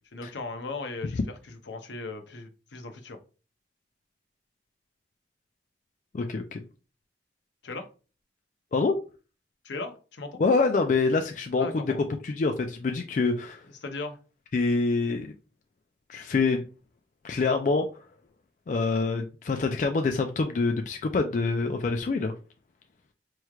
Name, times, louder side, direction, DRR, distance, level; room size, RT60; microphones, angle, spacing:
voice 1, 0.1-1.2 1.5-3.2 7.6-7.9 9.6-10.4 11.6-12.0 13.8-14.2, left 3 dB, 80° left, 0.7 m, -37 dB
voice 2, 6.1-6.6 8.7-9.0 10.4-11.8 12.2-13.6 14.5-15.3 16.1-16.6 17.2-17.9 18.7-22.3, left 3 dB, 45° left, 0.3 m, -26 dB
4.4 x 3.1 x 2.3 m
head